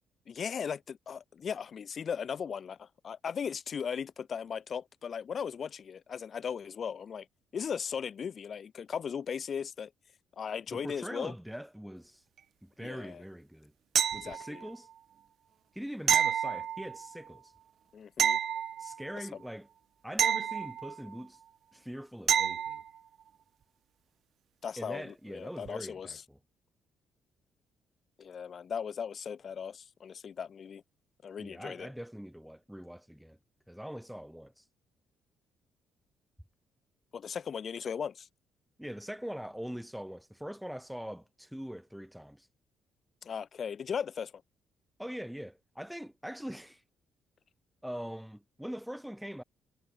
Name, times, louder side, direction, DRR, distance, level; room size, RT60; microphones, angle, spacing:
voice 1, 0.3-7.3 7.5-9.9 10.4-11.3 12.8-13.2 14.2-14.7 17.9-18.4 19.1-19.2 24.6-26.2 28.2-30.8 31.2-31.9 37.1-38.3 43.2-44.3, left 7 dB, 50° left, 2.9 m, -37 dB
voice 2, 10.7-12.2 12.6-13.7 14.1-14.9 15.7-17.5 18.8-19.7 20.0-21.4 21.7-22.8 24.8-26.4 31.4-33.4 33.7-34.6 38.8-42.5 45.0-46.8 47.8-49.4, equal, ahead, 1.3 m, -42 dB
sound 1, 14.0-14.7 16.1-17.2 18.2-19.2 20.2-21.2 22.3-22.9 25.7-25.8, right 9 dB, 60° right, 0.3 m, -29 dB
supercardioid pair, 65°, 0 cm